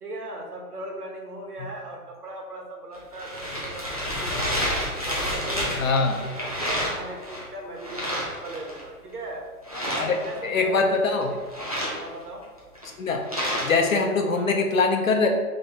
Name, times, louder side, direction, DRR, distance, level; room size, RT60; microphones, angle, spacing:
voice 1, 0.0-4.7 5.0-9.4 9.9-11.4 12.0-12.4 14.3-14.5, right 1 dB, 85° right, 0 dB, 1.4 m, -38 dB
sound 1, 2.9-7.4 7.8-8.8 9.6-10.6 11.2-13.9, equal, 25° right, 0.5 m, -30 dB
voice 2, 5.8-6.2 10.0-10.2 10.4-11.3 13.0-13.2 13.6-15.3, left 4 dB, 60° left, 3 dB, 0.8 m, -22 dB
3.9 x 3.3 x 4.1 m, 1.4 s
hypercardioid pair, 175°, 45 cm